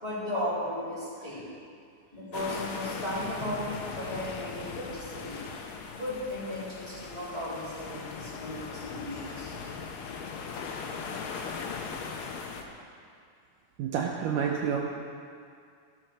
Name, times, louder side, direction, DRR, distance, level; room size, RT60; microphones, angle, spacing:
voice 1, 0.0-1.5 2.1-5.4 5.9-9.5, left 1 dB, 10° left, -10 dB, 2.9 m, -35 dB
sound 1, 2.3-12.6, left 5 dB, 75° left, 2.4 m, -39 dB
voice 2, 13.8-14.8, right 7 dB, 75° right, -1 dB, 2.1 m, -29 dB
15.0 x 6.4 x 6.1 m, 2.3 s
omnidirectional pair, 4.2 m